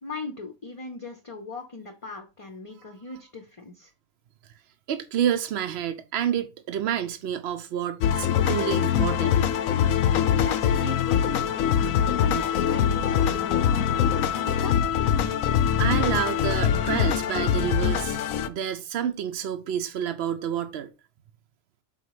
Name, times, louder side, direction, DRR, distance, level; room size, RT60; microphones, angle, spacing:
voice 1, 0.0-3.9 10.4-14.8 15.2-15.5, left 3 dB, 30° left, 0.7 m, -39 dB
voice 2, 4.9-9.9 15.8-18.2 18.5-20.9, right 9 dB, 65° right, 0.7 m, -29 dB
sound 1, 8.0-18.5, left 9 dB, 85° left, 1.0 m, -23 dB
5.5 x 3.9 x 4.8 m
omnidirectional pair, 1.4 m